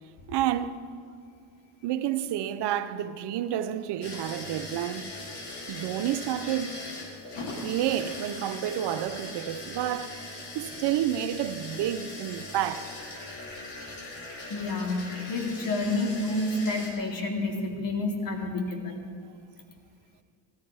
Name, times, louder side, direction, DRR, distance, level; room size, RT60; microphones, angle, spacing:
voice 1, 0.3-0.8 1.8-5.1 5.7-6.8 7.6-10.2 10.5-12.9, right 11 dB, 70° right, 0.8 m, -30 dB
sound 1, 4.0-16.9, left 2 dB, 65° left, 3.4 m, -40 dB
voice 2, 14.5-19.0, left 2 dB, 50° left, 2.7 m, -29 dB
16.0 x 13.5 x 4.7 m
supercardioid pair, 75°, 42 cm